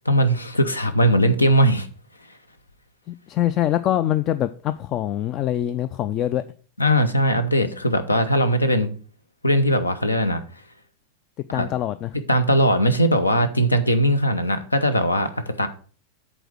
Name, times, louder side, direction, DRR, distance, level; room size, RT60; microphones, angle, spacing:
voice 1, 0.1-1.9 6.8-8.9 9.4-10.4 11.5-11.7 12.1-15.7, equal, 80° left, 0.8 m, -20 dB
voice 2, 3.1-6.4 11.5-12.1, left 12 dB, 35° left, 0.3 m, -24 dB
7.9 x 4.2 x 6.1 m
figure-of-eight pair, 90°, 0 cm